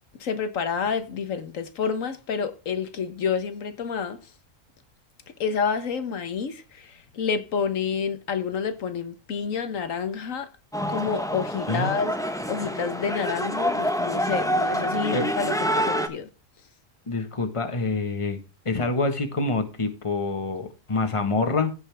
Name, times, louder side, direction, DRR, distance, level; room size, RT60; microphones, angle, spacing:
voice 1, 0.2-4.2 5.4-10.5 10.9-12.1 12.5-16.3, left 6 dB, 80° left, 1.5 m, -29 dB
sound 1, 10.7-16.1, equal, 5° left, 0.9 m, -27 dB
voice 2, 17.1-18.4 18.6-21.7, left 3 dB, 25° left, 1.4 m, -26 dB
16.0 x 5.6 x 3.4 m
omnidirectional pair, 1.3 m